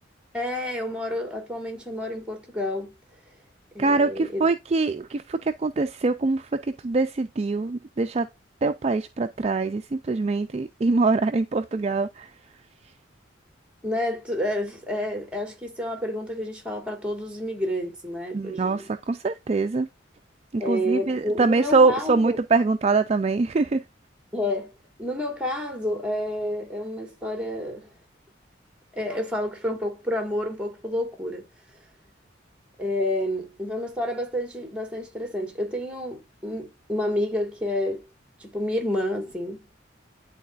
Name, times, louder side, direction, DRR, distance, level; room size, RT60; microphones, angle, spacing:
voice 1, 0.3-2.9 3.7-4.5 13.8-18.9 20.6-22.4 24.3-24.7 25.0-27.9 28.9-31.5 32.8-38.0 38.4-39.7, left 1 dB, 5° right, 1.7 m, -29 dB
voice 2, 3.8-8.3 8.6-12.3 18.3-19.9 20.5-23.8, right 3 dB, 30° right, 0.3 m, -23 dB
11.0 x 4.1 x 2.4 m
head